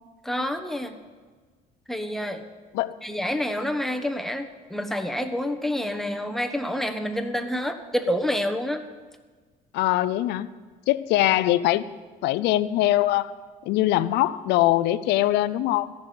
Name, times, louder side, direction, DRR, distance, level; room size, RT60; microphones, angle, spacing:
voice 1, 0.2-1.0 1.9-2.4 3.0-8.8, left 1 dB, ahead, 5 dB, 1.1 m, -28 dB
voice 2, 9.7-10.5 10.9-11.8 12.2-13.3 13.7-15.9, left 15 dB, 85° left, 15 dB, 0.6 m, -22 dB
14.5 x 6.9 x 9.4 m, 1.4 s
cardioid pair, 110°, 17 cm